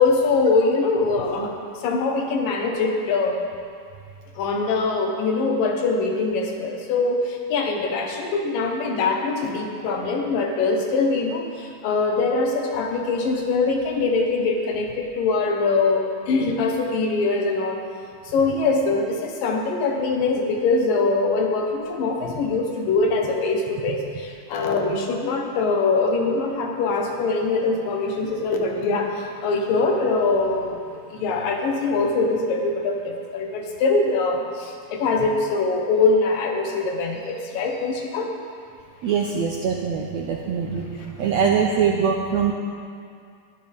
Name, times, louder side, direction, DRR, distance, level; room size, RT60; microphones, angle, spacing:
voice 1, 0.0-3.4 4.4-17.8 18.2-38.3, left 3 dB, 80° left, 2 dB, 2.9 m, -23 dB
voice 2, 39.0-42.5, right 6 dB, 75° right, 0 dB, 1.6 m, -23 dB
20.5 x 12.0 x 3.5 m, 2.3 s
omnidirectional pair, 4.0 m